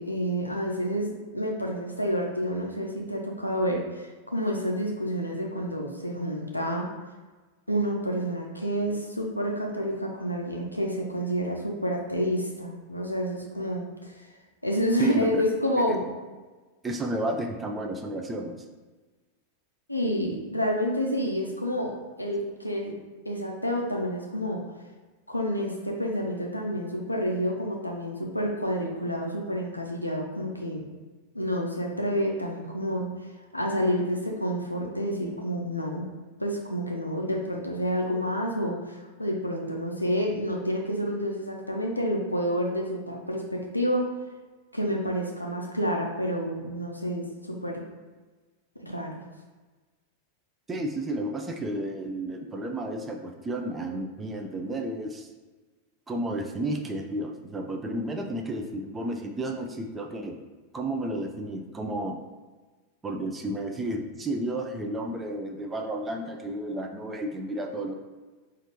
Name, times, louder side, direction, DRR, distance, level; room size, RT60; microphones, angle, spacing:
voice 1, 0.0-6.9 7.7-14.3 14.6-16.0 19.9-22.9 23.3-24.6 25.3-30.8 31.3-33.1 33.5-36.1 36.4-44.1 44.7-47.8 48.8-49.2, equal, 85° left, -1 dB, 0.4 m, -29 dB
voice 2, 15.0-15.4 15.8-16.0 16.8-18.6 50.7-55.3 56.1-60.4 60.7-62.2 63.0-68.0, right 1 dB, 15° right, 3 dB, 0.3 m, -32 dB
4.2 x 2.5 x 2.8 m, 1.3 s
figure-of-eight pair, 90°, 0 cm